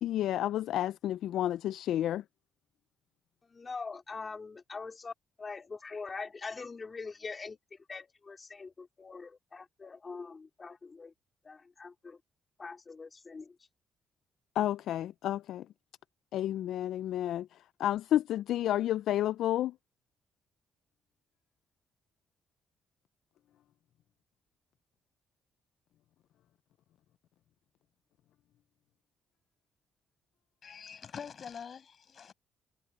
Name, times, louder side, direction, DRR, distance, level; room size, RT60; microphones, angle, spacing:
voice 1, 0.0-2.2 14.6-15.7 16.3-17.5 17.8-19.7, left 12 dB, 80° left, 0.3 m, -30 dB
voice 2, 3.4-11.1 11.4-12.2 12.6-13.7, left 4 dB, 30° left, 3.2 m, -43 dB
voice 3, 30.6-32.3, left 7 dB, 50° left, 6.2 m, -45 dB
cardioid pair, 90°, 0 cm